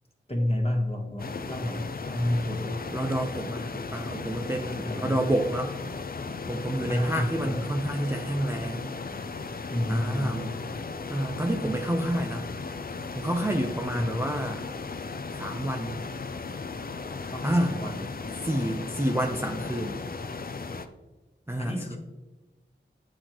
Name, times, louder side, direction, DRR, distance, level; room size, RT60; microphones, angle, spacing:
voice 1, 0.3-2.5 4.7-5.2 6.9-7.6 9.7-10.4 13.9-14.3 17.3-18.1 21.6-22.0, left 1 dB, 30° left, 1 dB, 1.2 m, -30 dB
sound 1, 1.2-20.9, left 4 dB, 50° left, 0.4 m, -36 dB
voice 2, 2.5-5.7 6.5-8.9 9.9-10.5 11.1-12.5 13.2-14.6 15.4-16.0 17.4-17.8 18.4-20.0 21.5-22.0, right 1 dB, 10° right, 2 dB, 0.5 m, -29 dB
8.4 x 3.8 x 3.0 m, 1.1 s
wide cardioid pair, 50°, 20 cm